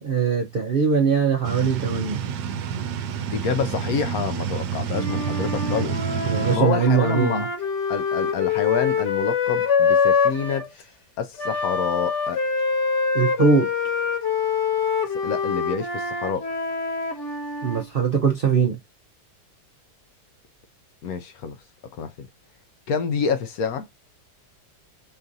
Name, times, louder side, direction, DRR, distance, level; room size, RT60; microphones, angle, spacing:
voice 1, 0.0-2.2 6.2-7.5 13.1-13.7 17.6-18.8, right 6 dB, 60° right, 0.5 m, -21 dB
sound 1, 1.4-6.6, right 7 dB, 80° right, 1.2 m, -28 dB
voice 2, 3.3-6.0 6.5-7.5 7.9-10.7 11.2-12.4 15.2-16.5 21.0-21.6 21.9-22.3 22.9-23.9, left 6 dB, 70° left, 0.9 m, -27 dB
Wind instrument woodwind instrument, 4.9-10.7 11.4-17.9, left 5 dB, 45° left, 1.3 m, -25 dB
5.3 x 2.5 x 2.6 m
omnidirectional pair, 1.8 m